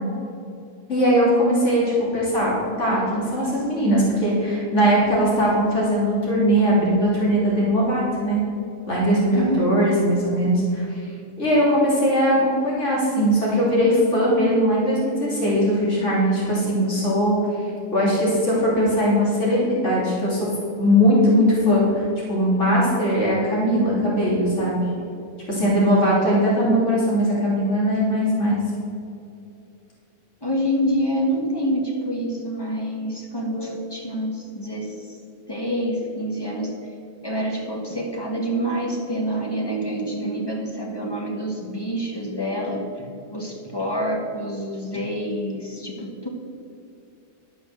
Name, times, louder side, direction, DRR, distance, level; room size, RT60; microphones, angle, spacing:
voice 1, 0.9-8.4 8.9-11.0 11.4-17.4 17.9-20.5 20.8-24.8 25.5-28.6, equal, 50° left, -6 dB, 3.3 m, -20 dB
voice 2, 9.3-9.6 30.4-35.2 35.5-36.7 37.2-46.3, equal, 15° left, -1 dB, 1.5 m, -27 dB
12.0 x 5.8 x 6.8 m, 2.6 s
omnidirectional pair, 1.6 m